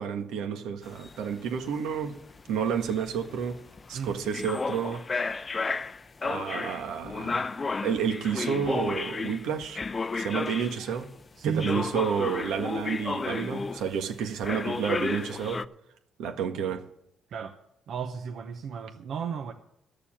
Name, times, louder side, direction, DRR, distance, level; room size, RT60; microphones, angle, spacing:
voice 1, 0.0-2.2 2.5-3.6 3.9-5.0 6.2-7.5 7.8-9.8 10.1-11.1 11.4-15.6 16.2-16.8, right 7 dB, 90° right, 1.5 m, -30 dB
sound 1, 0.8-11.0 11.6-14.1 14.4-15.6, left 4 dB, 30° left, 0.5 m, -33 dB
voice 2, 11.4-12.0 17.3-17.6 17.9-19.5, right 6 dB, 70° right, 0.9 m, -34 dB
13.0 x 7.0 x 8.8 m
cardioid pair, 90°, 0 cm